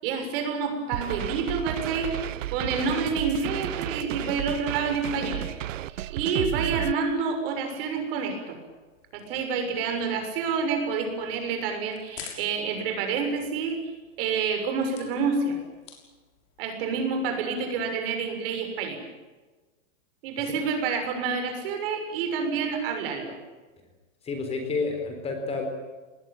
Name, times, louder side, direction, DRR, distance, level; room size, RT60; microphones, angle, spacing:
voice 1, 0.0-5.5 6.1-8.6 9.1-13.8 14.2-15.6 16.6-19.0 20.2-23.3, right 5 dB, 45° right, 6 dB, 6.8 m, -28 dB
sound 1, 0.9-6.9, right 13 dB, 75° right, 1.0 m, -33 dB
sound 2, 8.7-17.3, left 7 dB, 35° left, 6.4 m, -50 dB
voice 2, 24.2-25.7, left 4 dB, 15° left, 5 dB, 3.8 m, -30 dB
27.0 x 20.5 x 9.0 m, 1.3 s
supercardioid pair, 165°, 38 cm